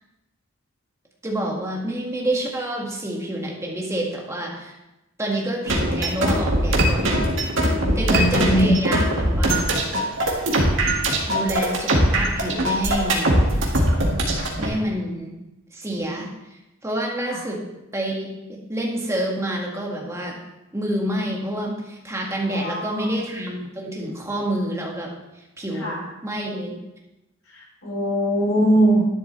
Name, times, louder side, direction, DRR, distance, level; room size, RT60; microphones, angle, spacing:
voice 1, 1.2-4.7 5.2-7.2 8.0-9.7 11.3-13.4 14.6-15.3 15.7-16.3 16.8-17.6 17.9-20.4 20.7-25.1 25.6-26.8, right 1 dB, 15° right, -2 dB, 2.0 m, -28 dB
sound 1, 5.7-14.7, right 1 dB, 70° right, 2.1 m, -21 dB
voice 2, 7.8-8.8 17.3-17.4 22.5-23.1 25.8-26.0 27.8-29.1, right 1 dB, 80° left, -2 dB, 3.7 m, -21 dB
11.5 x 10.0 x 3.4 m, 0.96 s
head